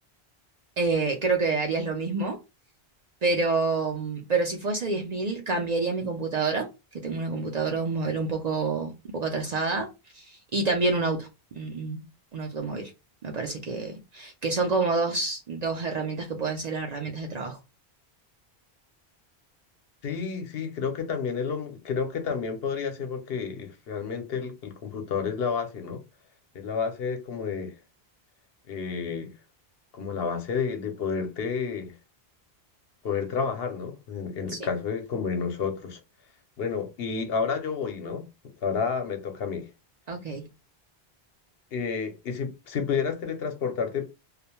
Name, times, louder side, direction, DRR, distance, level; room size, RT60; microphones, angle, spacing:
voice 1, 0.8-2.4 3.2-6.7 6.9-9.9 10.1-12.0 12.3-12.9 13.2-17.6 34.5-34.6 40.1-40.4, right 3 dB, 50° right, 0.5 m, -28 dB
voice 2, 20.0-26.0 26.5-27.7 28.7-29.3 29.9-31.9 33.0-36.0 36.6-38.2 38.6-39.7 41.7-44.1, left 6 dB, 70° left, 0.9 m, -30 dB
2.3 x 2.1 x 2.9 m
omnidirectional pair, 1.1 m